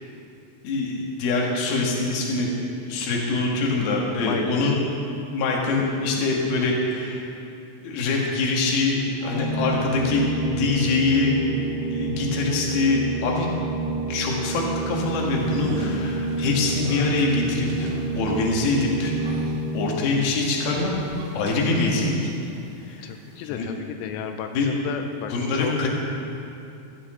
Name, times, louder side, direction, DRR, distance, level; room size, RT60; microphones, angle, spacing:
voice 1, 0.6-2.5 2.9-4.8 5.3-7.3 7.8-11.3 11.9-13.5 14.1-19.1 19.7-20.9 21.3-22.3 22.8-23.0 23.4-23.7 24.5-24.7 25.3-25.9, left 3 dB, 60° left, -2 dB, 3.3 m, -24 dB
voice 2, 4.1-4.8 23.0-25.9, left 8 dB, 90° left, 6 dB, 3.1 m, -33 dB
Organ, 9.2-19.9, right 3 dB, 15° left, 2.1 m, -29 dB
sound 1, 14.7-22.2 22.6-23.5, right 3 dB, 85° right, 3.8 m, -40 dB
15.5 x 14.0 x 3.8 m, 2.8 s
omnidirectional pair, 5.6 m